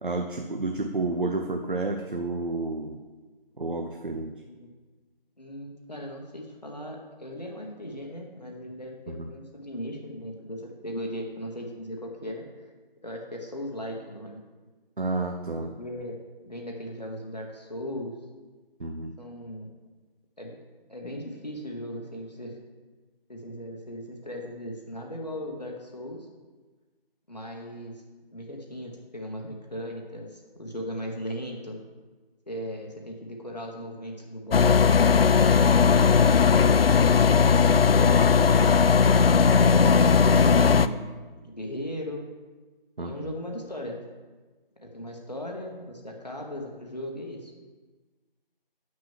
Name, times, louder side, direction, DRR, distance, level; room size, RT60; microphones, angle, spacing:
voice 1, 0.0-3.0 3.6-4.4 9.2-9.3 15.0-15.7 18.8-19.2 43.0-43.3, right 2 dB, 60° right, 4 dB, 0.7 m, -30 dB
voice 2, 5.4-12.5 13.0-14.4 15.6-16.2 16.4-18.1 19.2-19.7 20.4-20.6 20.9-22.6 23.3-26.3 27.3-28.0 28.3-31.8 32.5-39.1 40.2-41.0 41.4-42.2 43.0-44.0 44.8-47.5, equal, 45° left, 0 dB, 1.1 m, -37 dB
sound 1, 34.5-40.9, left 6 dB, 80° left, 0.5 m, -18 dB
6.4 x 5.9 x 7.4 m, 1.3 s
figure-of-eight pair, 180°, 29 cm